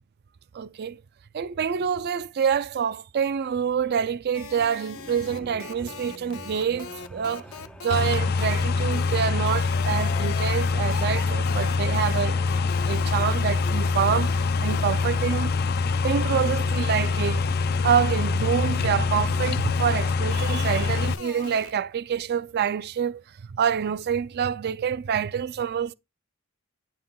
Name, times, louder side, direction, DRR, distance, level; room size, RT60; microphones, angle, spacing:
voice 1, 0.5-1.0 1.3-7.5 7.8-12.4 12.9-15.5 16.0-17.4 17.8-23.2 23.5-25.9, right 7 dB, 50° right, 0.4 m, -26 dB
sound 1, 4.3-8.0 8.4-8.6 8.9-9.2 9.5-12.2 12.5-21.7, left 6 dB, 85° left, 0.6 m, -41 dB
sound 2, 4.9-20.5, equal, 5° left, 0.6 m, -47 dB
sound 3, 7.9-21.1, left 4 dB, 50° left, 0.4 m, -24 dB
10.0 x 5.6 x 2.3 m
head